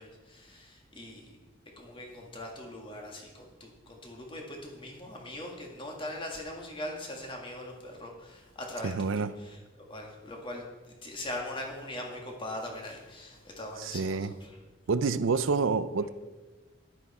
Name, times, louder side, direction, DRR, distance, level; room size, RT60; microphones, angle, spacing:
voice 1, 0.0-1.3 1.8-9.6 9.9-14.6, left 1 dB, 25° left, 1.9 m, -41 dB
voice 2, 8.8-9.3 13.8-14.3 14.9-16.1, right 4 dB, 70° right, 0.5 m, -28 dB
11.5 x 9.9 x 4.3 m
head